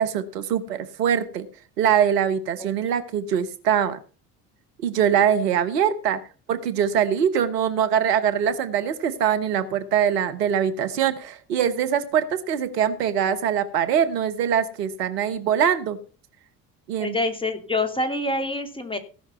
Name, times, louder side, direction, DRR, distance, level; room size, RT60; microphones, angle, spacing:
voice 1, 0.0-1.5 1.8-4.0 4.8-6.2 6.5-16.0 16.9-17.1, right 8 dB, 85° right, 11 dB, 1.2 m, -23 dB
voice 2, 17.0-19.0, left 2 dB, 10° left, 8 dB, 2.7 m, -26 dB
17.5 x 6.0 x 5.7 m, 0.36 s
hypercardioid pair, 60°, 47 cm